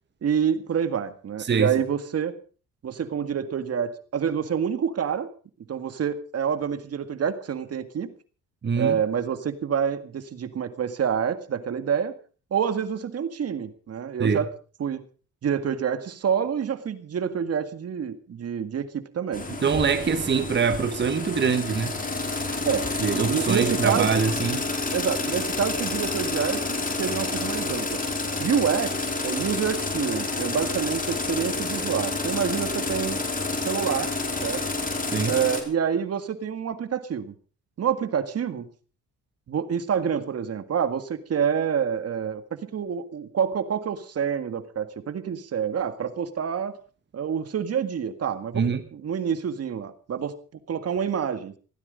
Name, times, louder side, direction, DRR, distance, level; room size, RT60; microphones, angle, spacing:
voice 1, 0.2-2.4 2.8-5.3 5.7-8.1 8.8-12.1 12.5-14.5 14.8-15.0 15.4-19.4 22.7-24.2 24.9-28.0 28.4-33.2 33.7-34.1 34.4-34.7 35.3-37.3 37.8-38.7 39.5-46.8 47.1-50.3 50.7-51.5, right 7 dB, 55° right, 1.9 m, -27 dB
voice 2, 1.4-1.8 8.6-9.0 14.2-14.4 19.6-22.0 23.0-24.7 35.1-35.4 48.5-48.8, right 6 dB, 35° right, 1.5 m, -24 dB
sound 1, 19.3-35.6, left 3 dB, 30° left, 4.5 m, -29 dB
17.5 x 14.5 x 5.2 m
cardioid pair, 90°, 30 cm